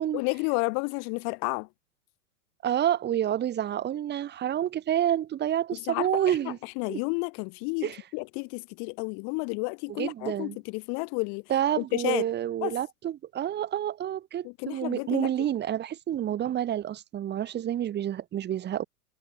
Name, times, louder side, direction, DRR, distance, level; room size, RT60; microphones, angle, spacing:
voice 1, 0.1-1.7 5.7-11.4 11.8-12.3 12.6-12.8 14.4-15.5, left 37 dB, 35° left, 1.9 m, -31 dB
voice 2, 2.6-6.6 6.9-7.0 7.8-8.0 10.0-10.6 11.5-18.8, right 11 dB, 20° right, 6.0 m, -28 dB
hypercardioid pair, 120°, 45 cm